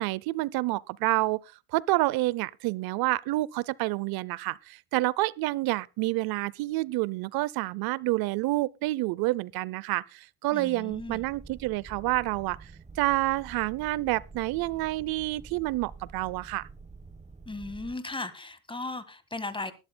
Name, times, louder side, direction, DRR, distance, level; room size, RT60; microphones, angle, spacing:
voice 1, 0.0-1.4 1.7-12.7 13.0-16.7, right 19 dB, 85° right, 0.6 m, -28 dB
voice 2, 10.5-11.2 17.4-19.7, left 2 dB, 15° left, 1.7 m, -36 dB
sound 1, 10.9-18.0, right 4 dB, 20° right, 1.2 m, -48 dB
21.0 x 11.5 x 2.2 m
cardioid pair, 115°, 36 cm